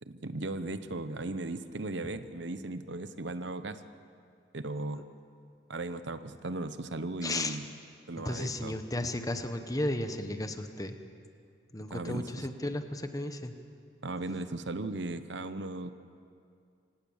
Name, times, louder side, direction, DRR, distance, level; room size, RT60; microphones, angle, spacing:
voice 1, 0.0-3.8 4.5-5.0 5.7-7.7 8.1-8.7 11.9-12.5 14.0-15.9, right 2 dB, 65° right, 12 dB, 0.9 m, -37 dB
voice 2, 7.2-7.6 8.1-10.9 11.7-13.5, left 1 dB, 20° left, 8 dB, 1.1 m, -34 dB
25.0 x 18.0 x 7.2 m, 2.4 s
head